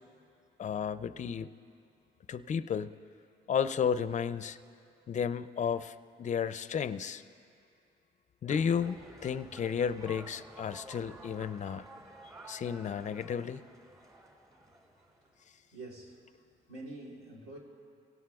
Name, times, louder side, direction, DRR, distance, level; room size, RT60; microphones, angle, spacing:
voice 1, 0.6-1.5 2.3-3.0 3.5-4.6 5.1-7.2 8.4-11.9 12.5-13.6, left 7 dB, 40° left, 14 dB, 0.4 m, -33 dB
sound 1, 8.5-15.3, right 1 dB, 15° right, 1.9 m, -51 dB
voice 2, 15.7-16.3 16.7-17.6, right 2 dB, 85° right, -2 dB, 3.2 m, -46 dB
23.5 x 17.0 x 2.4 m, 2.5 s
cardioid pair, 90°, 20 cm